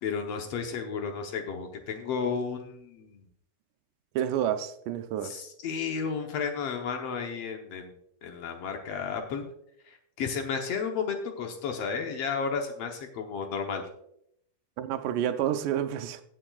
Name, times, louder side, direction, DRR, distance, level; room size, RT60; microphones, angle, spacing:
voice 1, 0.0-3.3 5.2-9.5 9.9-13.8, left 6 dB, 65° left, 4 dB, 1.7 m, -33 dB
voice 2, 4.2-5.4 14.8-16.2, right 10 dB, 80° right, 9 dB, 2.1 m, -29 dB
17.0 x 8.6 x 2.4 m, 0.73 s
omnidirectional pair, 3.8 m